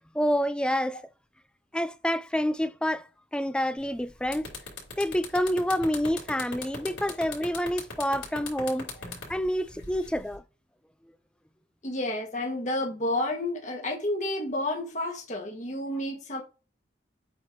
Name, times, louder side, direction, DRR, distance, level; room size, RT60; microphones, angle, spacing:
voice 1, 0.1-1.0 1.7-4.5 5.0-8.9 9.3-10.4, equal, 5° left, 0.4 m, -28 dB
sound 1, 3.8-4.0 4.3-10.4, left 4 dB, 85° left, 4.1 m, -39 dB
voice 2, 11.8-16.4, left 1 dB, 40° left, 1.7 m, -30 dB
8.6 x 4.2 x 3.1 m
head